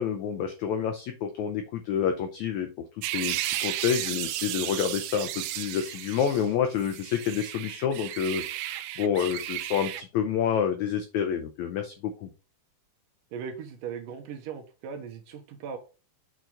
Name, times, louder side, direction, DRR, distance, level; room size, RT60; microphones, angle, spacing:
voice 1, 0.0-2.7 2.9-12.3, left 8 dB, 85° left, 6 dB, 1.6 m, -28 dB
sound 1, 3.0-6.5 6.8-10.0, right 14 dB, 85° right, 2.4 m, -34 dB
voice 2, 13.3-15.8, right 7 dB, 70° right, 4 dB, 2.6 m, -38 dB
7.5 x 4.6 x 3.8 m, 0.33 s
omnidirectional pair, 4.2 m